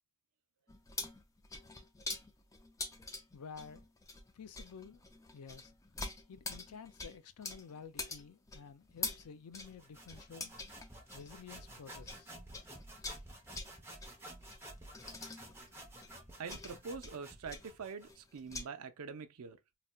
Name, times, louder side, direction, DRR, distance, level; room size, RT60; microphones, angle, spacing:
sound 1, 0.7-12.2 12.5-18.7, left 3 dB, 15° left, 0.3 m, -45 dB
voice 1, 3.3-3.9 4.3-5.0 5.3-5.7 6.3-10.5 11.1-12.3, left 6 dB, 85° left, 0.5 m, -51 dB
sound 2, 9.6-18.2, right 1 dB, 10° right, 0.7 m, -52 dB
voice 2, 16.4-19.6, right 5 dB, 80° right, 0.5 m, -44 dB
4.0 x 2.1 x 2.2 m
head